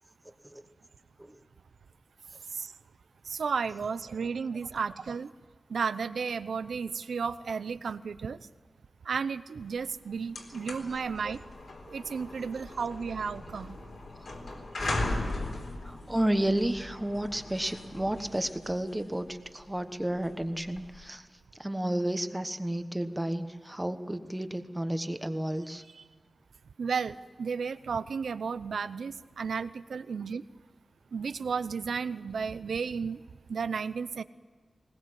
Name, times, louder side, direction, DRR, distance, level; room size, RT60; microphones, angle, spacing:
voice 1, 3.3-5.3 5.7-8.4 9.0-11.4 11.9-13.8 25.9-26.0 26.8-30.4 31.1-33.2 33.5-34.2, right 5 dB, 90° right, 14 dB, 0.7 m, -33 dB
sound 1, 9.8-9.9 10.2-21.1, left 2 dB, 60° left, 4.1 m, -38 dB
voice 2, 15.8-21.3 21.6-25.8, right 1 dB, 10° right, 9 dB, 1.2 m, -31 dB
20.5 x 20.0 x 7.7 m, 1.5 s
wide cardioid pair, 125°, 0 cm